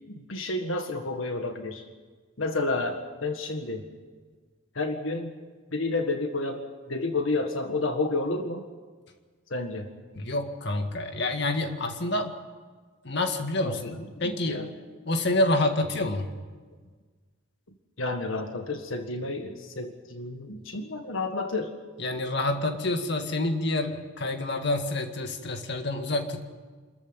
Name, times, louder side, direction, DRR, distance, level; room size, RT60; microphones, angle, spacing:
voice 1, 0.2-1.9 2.4-3.8 4.8-5.4 5.7-8.6 9.5-9.9 13.6-13.8 14.2-14.7 18.0-21.7, left 2 dB, 75° left, 5 dB, 1.7 m, -30 dB
voice 2, 10.1-12.3 13.0-14.7 15.1-16.3 22.0-26.4, left 2 dB, 55° left, 5 dB, 1.9 m, -28 dB
26.5 x 14.0 x 9.1 m, 1.5 s
head